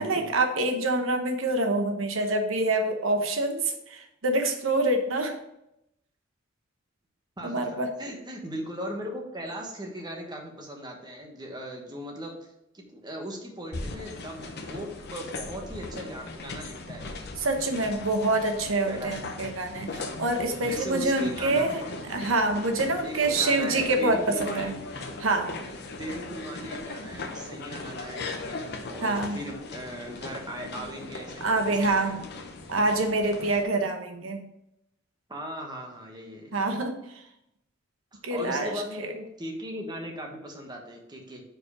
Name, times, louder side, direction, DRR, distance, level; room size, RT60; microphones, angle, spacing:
voice 1, 0.0-5.4 7.4-7.9 17.4-21.8 22.1-24.8 25.2-25.5 29.0-29.4 31.4-32.2 32.7-34.5 36.5-37.2 38.2-39.1, right 2 dB, 80° right, 5 dB, 1.0 m, -26 dB
voice 2, 7.4-17.2 18.8-19.4 20.7-22.0 23.0-24.8 26.0-32.1 35.3-36.6 38.1-41.4, equal, 20° right, 1 dB, 1.2 m, -38 dB
sound 1, 13.7-33.6, left 3 dB, 55° left, 0.8 m, -39 dB
5.1 x 4.7 x 4.9 m, 0.82 s
head